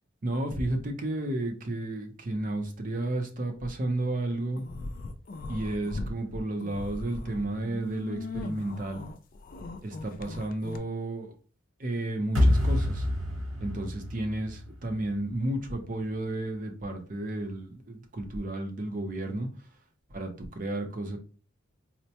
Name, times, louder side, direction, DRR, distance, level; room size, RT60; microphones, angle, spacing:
voice 1, 0.2-4.6 5.5-9.0 9.8-11.4 11.8-13.1 13.6-19.5 20.1-21.2, right 1 dB, 40° right, 5 dB, 0.6 m, -32 dB
sound 1, 4.6-6.1 6.5-10.8, left 2 dB, 45° left, 0.3 m, -39 dB
sound 2, 12.3-15.4, left 1 dB, 80° right, 1.2 m, -27 dB
4.2 x 2.1 x 2.8 m, 0.37 s
head